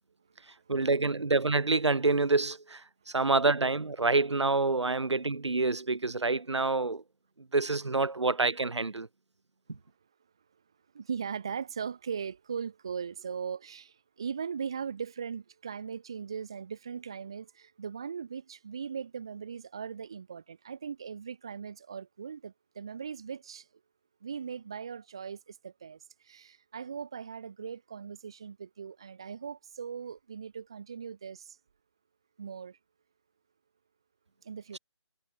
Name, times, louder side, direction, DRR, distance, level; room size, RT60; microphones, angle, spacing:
voice 1, 0.7-7.0 7.5-9.1, right 3 dB, 70° right, 1.7 m, -27 dB
voice 2, 10.9-23.7 24.2-31.6 32.4-32.8 34.4-34.8, right 6 dB, 10° right, 0.8 m, -39 dB
figure-of-eight pair, 175°, 15 cm